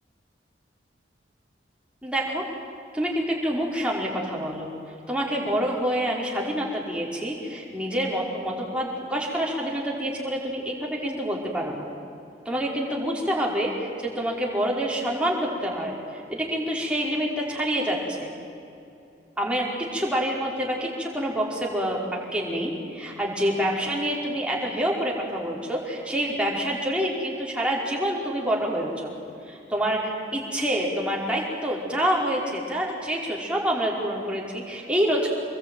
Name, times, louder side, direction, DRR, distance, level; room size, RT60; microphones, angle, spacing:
voice 1, 2.0-2.4 2.9-4.7 5.1-11.9 12.4-18.3 19.4-22.0 22.3-29.1 29.5-35.3, equal, 5° right, -3 dB, 5.1 m, -27 dB
27.0 x 22.0 x 9.4 m, 2.7 s
head